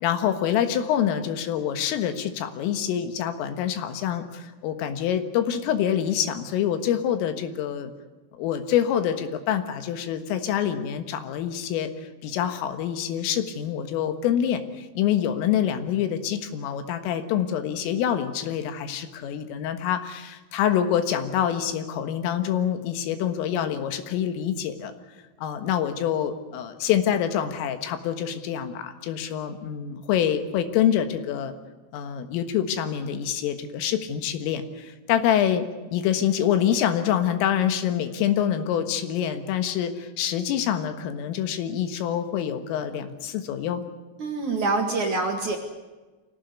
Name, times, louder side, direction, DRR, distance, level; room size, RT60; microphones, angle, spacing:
voice 1, 0.0-7.9 8.3-24.9 25.4-31.6 31.9-35.6 35.9-43.8, left 9 dB, 80° left, 9 dB, 4.1 m, -26 dB
voice 2, 44.2-45.6, right 3 dB, 55° right, 2 dB, 2.3 m, -25 dB
25.0 x 17.5 x 9.7 m, 1.2 s
omnidirectional pair, 5.9 m